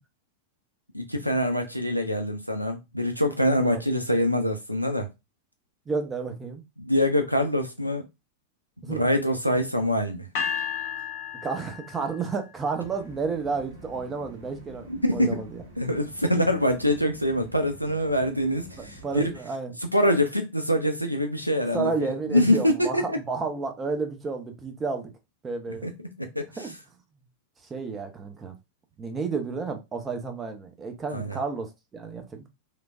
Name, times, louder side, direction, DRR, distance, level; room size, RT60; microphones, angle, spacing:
voice 1, 0.9-5.1 6.8-8.0 8.9-10.3 14.9-15.4 15.8-19.3 19.8-21.9 22.3-23.2 25.8-25.9 26.2-26.5 31.1-31.4, left 1 dB, 90° right, 0.4 m, -24 dB
voice 2, 5.9-6.6 8.8-9.0 11.4-14.9 15.1-15.6 18.8-19.8 21.7-25.1 25.4-25.9 26.6-26.7 27.7-28.5 29.0-32.5, right 4 dB, 20° right, 0.5 m, -31 dB
sound 1, 10.3-12.4, left 7 dB, 50° left, 0.6 m, -32 dB
sound 2, 12.8-19.4, right 1 dB, 75° right, 1.3 m, -48 dB
3.1 x 2.1 x 2.4 m
figure-of-eight pair, 90°, 0 cm